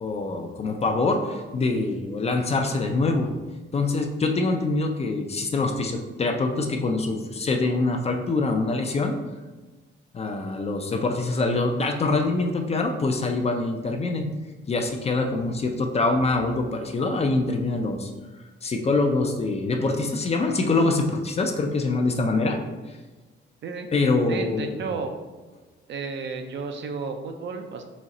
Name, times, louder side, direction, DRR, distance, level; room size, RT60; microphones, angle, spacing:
voice 1, 0.0-3.3 3.7-9.1 10.1-14.3 14.7-18.1 18.6-22.6 22.8-22.9 23.9-24.8, left 3 dB, 30° left, 4 dB, 0.4 m, -24 dB
voice 2, 24.3-25.1 25.9-27.8, right 4 dB, 60° right, 5 dB, 0.5 m, -32 dB
4.1 x 3.0 x 3.7 m, 1.3 s
wide cardioid pair, 165°, 21 cm